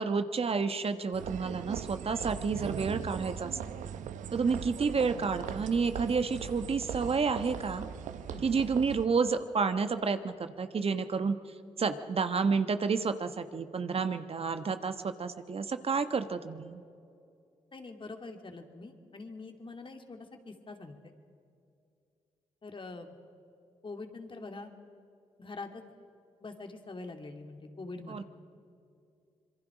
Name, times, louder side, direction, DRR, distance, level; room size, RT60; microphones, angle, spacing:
voice 1, 0.0-3.8 4.3-7.8 8.4-11.4 11.8-16.8 28.1-28.2, right 5 dB, 50° right, 9 dB, 1.2 m, -30 dB
sound 1, 1.1-9.1, right 8 dB, 80° right, 0.8 m, -40 dB
voice 2, 17.7-21.1 22.6-23.1 23.8-24.7 25.4-25.8 26.4-28.2, left 3 dB, 40° left, 5 dB, 2.6 m, -44 dB
26.0 x 22.5 x 5.0 m, 2.5 s
supercardioid pair, 45°, 13 cm